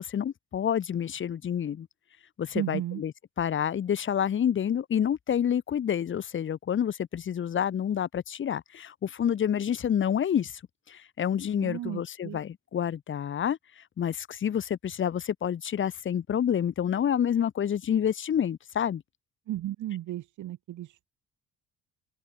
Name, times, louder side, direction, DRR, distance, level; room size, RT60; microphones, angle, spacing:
voice 1, 0.0-1.9 2.4-3.1 3.4-10.5 10.9-13.6 14.0-19.0, left 9 dB, 40° left, 0.8 m, -28 dB
voice 2, 2.5-3.0 11.6-12.4 19.5-21.1, right 13 dB, 80° right, 2.2 m, -34 dB
open air
cardioid pair, 90°, 30 cm